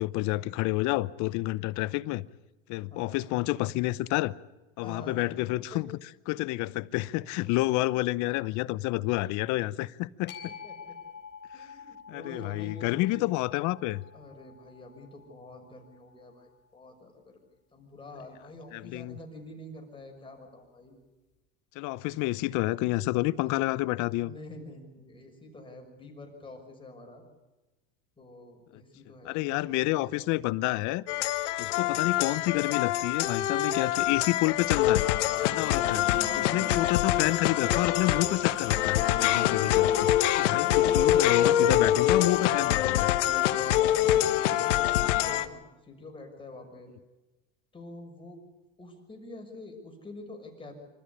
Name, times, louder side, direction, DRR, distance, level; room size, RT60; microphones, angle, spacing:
voice 1, 0.0-2.3 2.7-4.3 4.8-5.9 6.3-10.5 11.5-11.7 12.1-14.0 18.7-19.2 21.7-24.3 29.2-31.0 31.6-35.1 35.4-40.1 40.4-43.1, left 19 dB, 55° left, 0.8 m, -29 dB
voice 2, 2.9-3.3 4.8-5.2 5.7-5.8 10.6-10.7 11.5-13.2 14.1-21.0 24.2-27.2 28.2-30.3 43.7-46.9 47.7-48.4 48.8-50.7, left 2 dB, 15° left, 6.3 m, -47 dB
sound 1, 10.3-16.5, left 6 dB, 30° left, 3.7 m, -48 dB
sound 2, 31.1-45.5, left 12 dB, 85° left, 1.3 m, -25 dB
sound 3, 35.6-41.3, right 2 dB, 60° right, 7.8 m, -43 dB
25.5 x 14.0 x 10.0 m
supercardioid pair, 115°, 35 cm